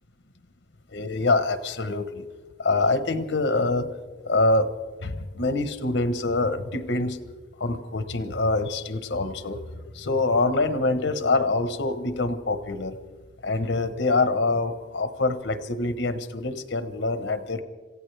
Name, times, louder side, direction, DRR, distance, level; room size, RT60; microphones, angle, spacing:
voice 1, 0.9-2.2 2.6-3.9 4.2-4.7 5.0-7.2 7.6-9.6 9.9-13.0 13.4-17.6, left 2 dB, 85° left, 10 dB, 1.1 m, -25 dB
26.5 x 16.0 x 3.4 m, 1.4 s
head